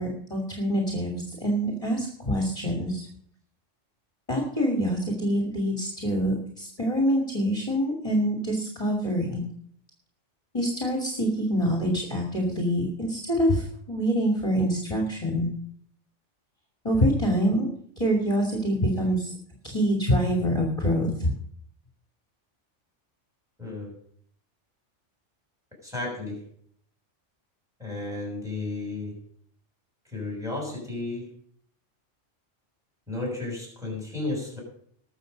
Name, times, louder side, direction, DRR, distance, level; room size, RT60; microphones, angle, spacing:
voice 1, 0.0-3.1 4.3-9.4 10.5-15.5 16.8-17.7 18.0-19.3 19.6-21.3, equal, 30° left, 0 dB, 2.5 m, -25 dB
voice 2, 23.6-23.9 25.8-26.4 27.8-29.2 30.1-31.3 33.1-34.6, left 2 dB, 5° right, -1 dB, 6.4 m, -33 dB
20.0 x 7.0 x 5.2 m, 0.64 s
omnidirectional pair, 1.2 m